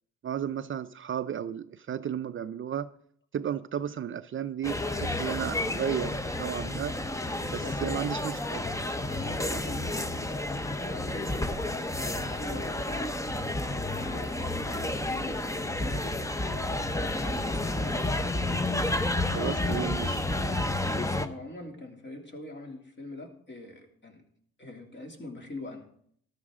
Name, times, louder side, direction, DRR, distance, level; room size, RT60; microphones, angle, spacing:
voice 1, 0.2-2.9 3.3-7.0 7.5-8.6 19.3-20.3, right 9 dB, 40° right, 12 dB, 0.5 m, -33 dB
sound 1, 4.6-21.3, left 2 dB, 10° left, 0.8 m, -31 dB
voice 2, 7.6-8.1 9.1-11.8 12.1-13.1 13.6-16.1 16.8-18.2 20.9-24.3 24.6-25.9, left 2 dB, 35° left, 2 dB, 2.8 m, -43 dB
13.5 x 12.0 x 3.7 m, 0.64 s
cardioid pair, 90°, 30 cm